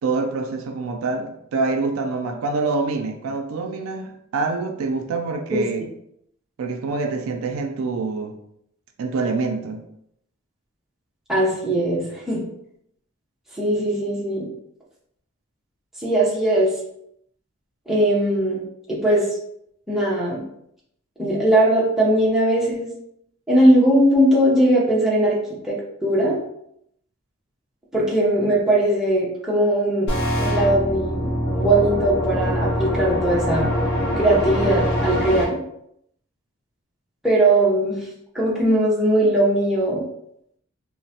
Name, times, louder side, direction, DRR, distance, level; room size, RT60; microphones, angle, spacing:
voice 1, 0.0-5.8 6.6-8.4 9.0-9.8, right 3 dB, 80° right, 5 dB, 0.4 m, -26 dB
voice 2, 11.3-12.5 13.6-14.5 16.0-16.7 17.9-18.6 18.9-19.3 19.9-20.4 21.2-22.9 23.5-25.4 25.6-26.4 27.9-30.1 30.4-33.7 34.2-35.6 37.2-38.1 38.3-40.0, right 1 dB, ahead, -7 dB, 0.7 m, -19 dB
sound 1, 30.1-35.4, equal, 55° left, 0.6 m, -23 dB
2.9 x 2.0 x 2.8 m, 0.74 s
head